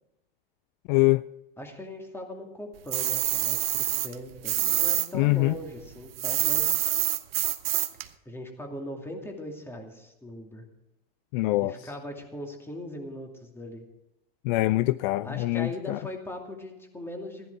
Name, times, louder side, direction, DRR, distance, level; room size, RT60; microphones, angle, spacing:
voice 1, 0.9-1.2 5.1-5.5 11.3-11.7 14.4-16.0, left 20 dB, 55° left, 0.4 m, -24 dB
voice 2, 1.6-6.8 8.3-10.6 11.6-13.8 15.2-17.5, left 1 dB, 10° left, 2.4 m, -40 dB
sound 1, 2.9-5.1 5.4-8.1, right 13 dB, 85° right, 1.0 m, -26 dB
14.5 x 10.5 x 4.7 m
supercardioid pair, 120°, 29 cm